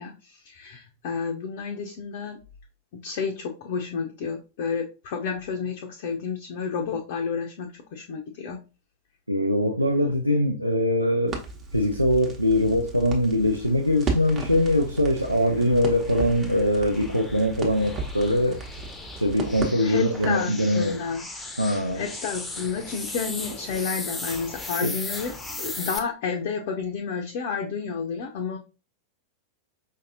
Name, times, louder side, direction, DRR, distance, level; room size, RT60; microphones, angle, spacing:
voice 1, 0.0-2.4 2.9-8.6 19.8-21.2 21.9-28.6, left 6 dB, 50° left, 0.5 m, -31 dB
voice 2, 9.3-11.4 11.7-18.6 19.1-21.0 21.6-22.0 24.8-24.9, left 1 dB, 90° right, 0.4 m, -22 dB
Crackle, 11.3-20.5, right 3 dB, 25° right, 1.0 m, -35 dB
sound 1, 14.6-26.0, left 2 dB, 10° left, 0.6 m, -38 dB
5.0 x 2.7 x 2.5 m
figure-of-eight pair, 90°, 0 cm